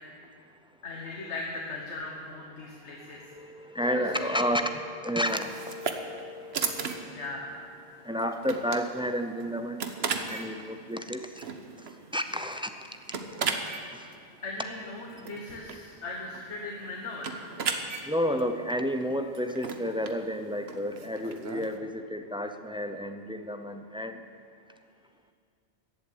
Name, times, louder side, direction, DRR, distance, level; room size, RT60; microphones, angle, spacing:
voice 1, 0.8-3.2 3.9-4.4 7.1-7.5 14.4-17.3, left 3 dB, 85° left, -1 dB, 1.6 m, -38 dB
voice 2, 2.8-7.3 7.8-9.8 10.3-11.4 12.1-12.7 13.9-14.1 18.0-24.2, equal, 10° right, 7 dB, 0.4 m, -31 dB
sound 1, 5.3-21.8, right 5 dB, 65° right, 1.2 m, -37 dB
14.5 x 8.3 x 8.5 m, 2.3 s
omnidirectional pair, 1.1 m